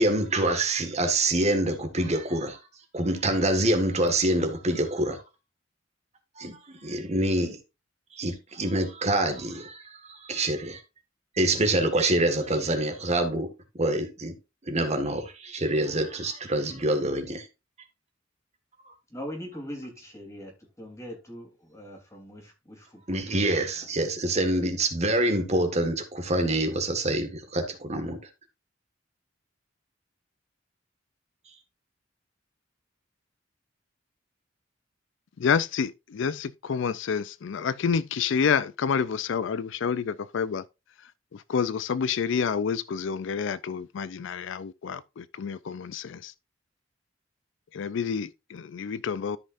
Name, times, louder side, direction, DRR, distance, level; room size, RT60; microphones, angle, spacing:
voice 1, 0.0-2.6 2.9-5.2 6.4-7.6 8.1-10.8 11.3-13.5 13.7-14.3 14.6-17.5 23.1-28.2, right 1 dB, 35° right, 1.6 m, -26 dB
voice 2, 19.1-23.4, equal, 15° left, 3.2 m, -41 dB
voice 3, 35.4-40.6 41.3-46.3 47.7-49.4, left 6 dB, 65° left, 0.4 m, -28 dB
13.5 x 5.5 x 2.5 m
head